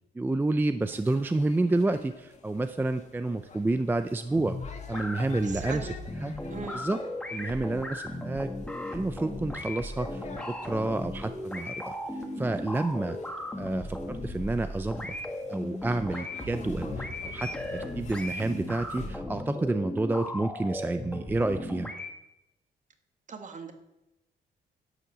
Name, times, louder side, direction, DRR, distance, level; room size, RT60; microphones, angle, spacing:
voice 1, 0.1-4.6 4.9-5.9 6.2-6.3 6.7-7.0 7.3-8.5 8.9-13.2 13.6-15.1 15.5-21.9, right 2 dB, 10° right, 10 dB, 0.4 m, -29 dB
sound 1, 0.9-19.2, left 4 dB, 40° left, 1.7 m, -47 dB
sound 2, 4.3-22.1, left 1 dB, 5° left, 1.5 m, -37 dB
voice 2, 5.4-6.0 6.5-6.8 23.3-23.7, right 5 dB, 40° right, 6 dB, 1.5 m, -39 dB
11.5 x 8.1 x 7.4 m, 0.94 s
cardioid pair, 150°, 18 cm